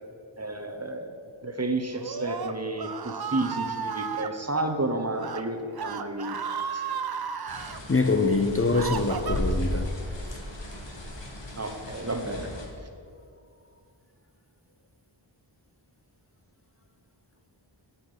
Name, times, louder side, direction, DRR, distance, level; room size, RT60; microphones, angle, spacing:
voice 1, 0.4-1.1 1.4-6.4 6.7-6.8 11.6-12.5, right 2 dB, 30° right, 1.1 m, -31 dB
Screaming, 1.9-4.3 5.1-5.4 5.7-7.8 8.4-9.7, right 6 dB, 50° right, 0.6 m, -34 dB
sound 1, 7.5-12.7, left 1 dB, 60° left, 1.8 m, -35 dB
voice 2, 7.9-10.4, left 3 dB, 30° left, 0.6 m, -25 dB
8.3 x 8.1 x 7.3 m
wide cardioid pair, 45°, 48 cm